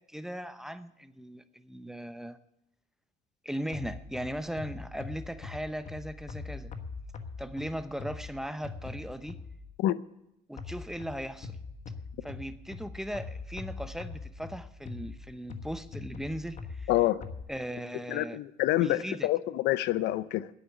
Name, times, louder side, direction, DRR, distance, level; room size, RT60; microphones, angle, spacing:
voice 1, 0.1-2.4 3.4-6.7 7.4-9.4 10.5-11.5 12.2-16.9 17.5-18.4 18.8-19.3, equal, 5° right, 11 dB, 0.8 m, -38 dB
sound 1, 3.7-9.8 10.6-17.4, left 4 dB, 45° left, 1.4 m, -42 dB
voice 2, 16.9-17.2 18.1-20.5, left 15 dB, 85° left, 16 dB, 0.6 m, -27 dB
10.5 x 9.1 x 9.9 m, 0.83 s
cardioid pair, 110°, 17 cm